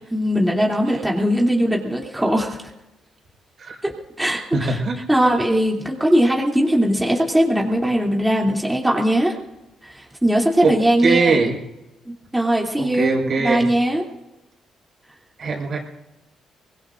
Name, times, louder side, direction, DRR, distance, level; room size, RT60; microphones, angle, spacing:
voice 1, 0.1-2.6 3.8-3.9 4.2-4.8 5.1-9.4 9.8-11.4 12.1-14.0, equal, 5° right, -2 dB, 2.9 m, -20 dB
voice 2, 4.5-5.0 10.6-11.6 12.8-13.7 15.4-15.8, right 4 dB, 50° right, 0 dB, 4.9 m, -21 dB
24.5 x 20.5 x 2.6 m, 0.95 s
cardioid pair, 90°, 0 cm